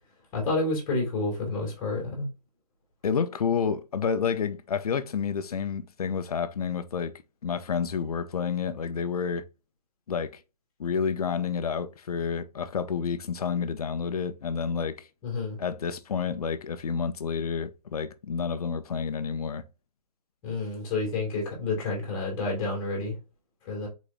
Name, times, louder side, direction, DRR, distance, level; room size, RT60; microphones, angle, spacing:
voice 1, 0.3-2.3 15.2-15.6 20.4-23.2 23.6-23.9, left 3 dB, 25° left, 2.4 m, -29 dB
voice 2, 3.0-7.1 7.4-9.4 10.1-10.4 10.8-15.1 15.6-19.6, left 6 dB, 65° left, 0.7 m, -29 dB
4.8 x 4.1 x 2.5 m
hypercardioid pair, 145°, 21 cm